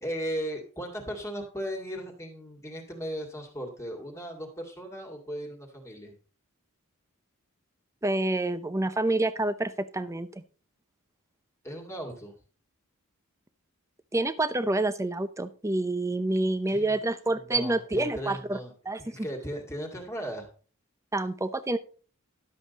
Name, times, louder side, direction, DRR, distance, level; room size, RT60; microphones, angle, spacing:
voice 1, 0.0-6.1 11.6-12.3 16.7-17.0 17.3-18.7 19.0-20.5, equal, 15° left, 2 dB, 2.2 m, -37 dB
voice 2, 8.0-10.3 14.1-18.6 18.9-19.2 21.1-21.8, right 2 dB, 15° right, 13 dB, 0.7 m, -28 dB
12.0 x 7.7 x 4.1 m, 0.39 s
head